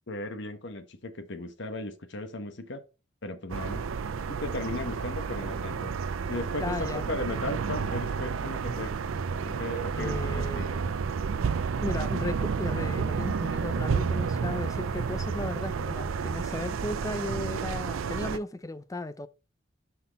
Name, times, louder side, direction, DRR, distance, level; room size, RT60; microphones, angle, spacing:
voice 1, 0.1-2.8 3.2-3.8 4.3-5.9 6.3-9.0 9.4-10.7, left 2 dB, 60° left, 1.1 m, -36 dB
sound 1, 3.5-18.4, right 5 dB, 85° right, 0.5 m, -31 dB
voice 2, 6.6-7.0 10.0-10.8 11.8-19.3, left 2 dB, 15° left, 0.4 m, -35 dB
5.9 x 5.8 x 4.1 m
head